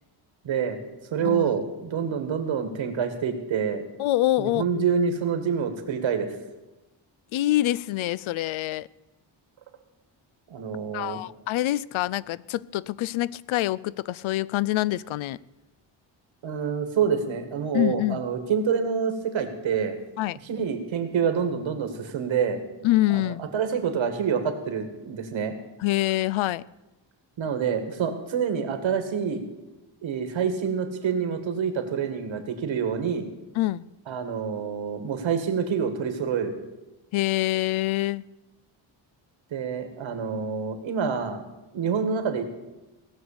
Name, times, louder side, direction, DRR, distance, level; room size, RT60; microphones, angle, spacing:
voice 1, 0.4-0.8 1.1-3.8 4.4-6.3 10.5-11.2 16.4-20.0 20.4-22.6 23.1-25.5 27.4-29.4 30.0-33.3 34.1-36.5 39.5-41.4 41.7-42.4, right 6 dB, 75° right, 2.1 m, -27 dB
voice 2, 1.2-1.5 4.0-4.8 7.3-8.9 10.9-15.4 17.7-18.3 20.2-20.4 22.8-23.4 25.8-26.6 33.6-33.8 37.1-38.2, left 16 dB, 90° left, 0.5 m, -25 dB
18.0 x 6.3 x 8.6 m
cardioid pair, 125°, 46 cm